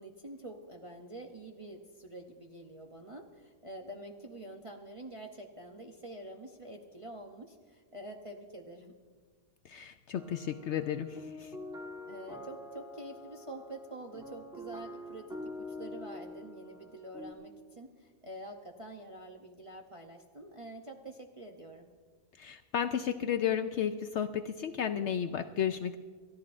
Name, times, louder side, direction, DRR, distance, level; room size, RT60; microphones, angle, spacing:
voice 1, 0.0-8.9 12.1-21.9, right 1 dB, 35° right, 2 dB, 0.6 m, -47 dB
voice 2, 9.6-11.5 22.4-26.0, left 9 dB, 65° left, 9 dB, 0.7 m, -33 dB
sound 1, 10.1-17.3, left 1 dB, 5° right, 1.8 m, -45 dB
28.5 x 13.5 x 2.5 m, 1.5 s
omnidirectional pair, 1.5 m